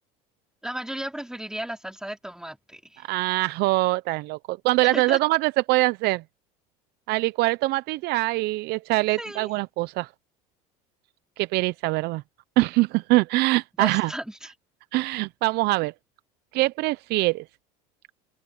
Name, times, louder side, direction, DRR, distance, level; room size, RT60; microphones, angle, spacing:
voice 1, 0.6-3.1 4.9-5.2 9.2-9.5 13.8-14.5, right 1 dB, 5° right, 4.1 m, -35 dB
voice 2, 3.1-6.2 7.1-10.1 11.4-12.2 12.6-14.1 14.9-15.9 16.5-17.4, right 20 dB, 60° right, 0.9 m, -23 dB
hypercardioid pair, 85°, 19 cm